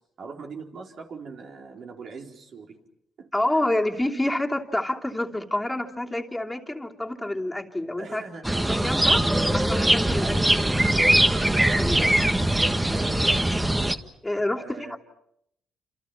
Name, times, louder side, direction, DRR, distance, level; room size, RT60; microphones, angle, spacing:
voice 1, 0.0-2.8 3.2-3.7 8.0-8.4 10.2-10.5 12.8-13.3 14.6-15.0, right 4 dB, 60° right, 2 dB, 4.3 m, -41 dB
voice 2, 3.3-8.2 8.7-9.2 9.5-10.3 10.7-10.8 11.5-12.1 14.2-14.8, left 1 dB, 10° left, 1 dB, 2.8 m, -28 dB
sound 1, 8.4-13.9, right 1 dB, 10° right, 1.6 m, -21 dB
29.0 x 27.5 x 5.9 m, 0.75 s
cardioid pair, 90°, 0 cm